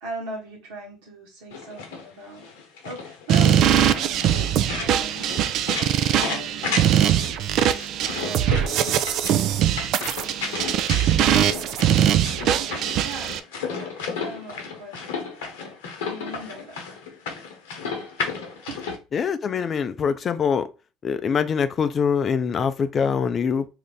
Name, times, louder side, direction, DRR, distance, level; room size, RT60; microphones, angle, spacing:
voice 1, 0.0-2.4 2.8-5.3 6.1-6.9 8.0-8.8 11.2-11.9 13.0-13.3 13.7-15.0 16.0-16.8 18.7-18.8, right 2 dB, 80° right, 1.4 m, -39 dB
sound 1, 1.5-19.0, left 5 dB, 80° left, 0.8 m, -33 dB
sound 2, 3.3-13.4, right 10 dB, 60° right, 0.3 m, -21 dB
voice 2, 19.1-20.7 21.0-23.7, left 6 dB, 40° left, 0.4 m, -24 dB
2.8 x 2.5 x 3.4 m
hypercardioid pair, 75°, 0 cm